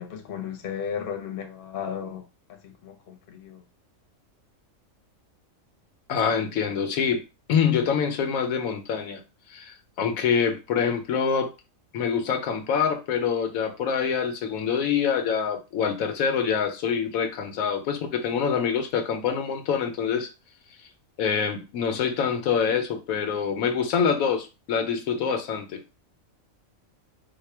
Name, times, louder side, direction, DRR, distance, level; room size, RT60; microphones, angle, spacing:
voice 1, 0.0-3.6, left 8 dB, 50° left, 0.8 m, -35 dB
voice 2, 6.1-7.2 7.5-9.2 9.5-11.5 11.9-20.3 21.2-25.8, left 7 dB, 90° left, 1.1 m, -25 dB
4.2 x 2.1 x 3.2 m
omnidirectional pair, 1.4 m